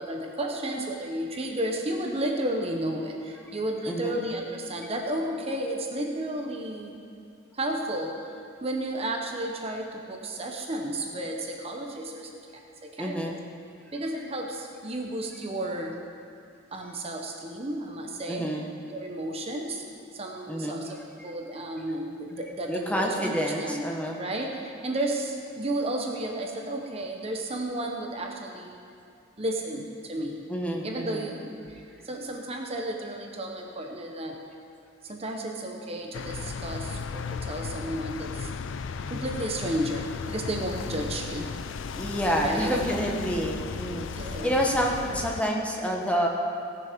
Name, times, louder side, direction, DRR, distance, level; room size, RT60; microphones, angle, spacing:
voice 1, 0.0-6.9 7.5-13.4 13.9-16.0 16.7-18.5 18.9-19.8 20.1-23.9 24.2-28.8 29.4-30.4 30.8-34.4 35.0-38.5 39.1-41.5 42.3-42.8 44.1-44.5, right 1 dB, 30° right, 2 dB, 0.8 m, -33 dB
voice 2, 13.0-13.4 18.3-18.7 20.5-20.8 22.7-24.2 30.5-31.3 41.9-46.3, equal, 5° left, 0 dB, 1.0 m, -28 dB
sound 1, 36.1-45.4, left 5 dB, 70° left, 0.4 m, -35 dB
16.5 x 7.1 x 5.1 m, 2.4 s
head